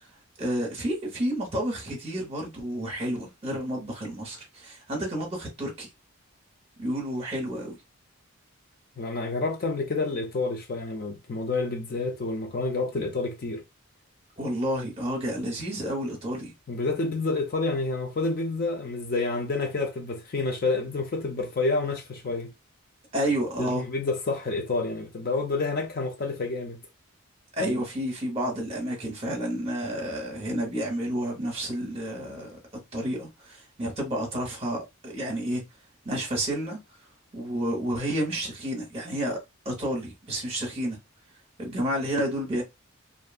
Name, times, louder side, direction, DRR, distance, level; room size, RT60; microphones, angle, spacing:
voice 1, 0.4-5.9 6.8-7.8 14.4-16.5 23.1-23.9 27.5-32.6 32.9-35.6 36.0-36.8 37.3-39.4 39.6-41.0 41.6-42.6, equal, 25° right, 0.9 m, -30 dB
voice 2, 9.0-13.6 16.7-22.5 23.6-26.8 27.6-27.7, left 3 dB, 40° left, 0.4 m, -29 dB
2.6 x 2.3 x 2.3 m
head